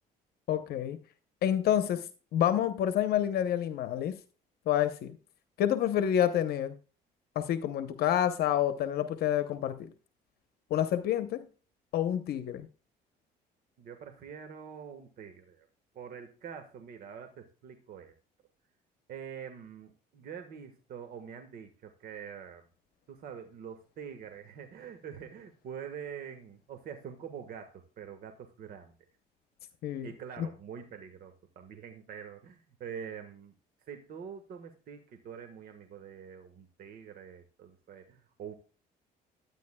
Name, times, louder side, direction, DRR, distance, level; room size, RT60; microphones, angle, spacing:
voice 1, 0.5-1.0 1.4-4.2 4.7-5.2 5.6-6.7 7.4-9.9 10.7-11.5 11.9-12.7 29.8-30.1 30.4-30.5, left 10 dB, 65° left, 0.8 m, -28 dB
voice 2, 13.8-15.7 15.9-18.1 19.1-22.7 23.1-28.9 30.0-33.5 33.8-38.5, right 7 dB, 60° right, 1.4 m, -45 dB
12.0 x 9.1 x 2.2 m
cardioid pair, 110°, 17 cm